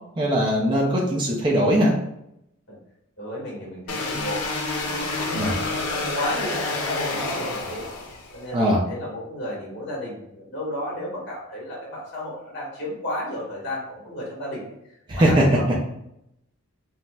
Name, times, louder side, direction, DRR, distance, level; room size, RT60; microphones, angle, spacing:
voice 1, 0.2-1.9 5.3-5.5 8.5-8.8 15.1-15.4, equal, 20° right, -3 dB, 0.5 m, -20 dB
voice 2, 3.2-4.4 4.7-7.9 8.3-14.7 15.2-15.8, left 1 dB, 50° left, -4 dB, 1.3 m, -33 dB
sound 1, 3.9-8.4, left 2 dB, 85° left, 0.6 m, -28 dB
4.0 x 2.1 x 2.3 m, 0.80 s
head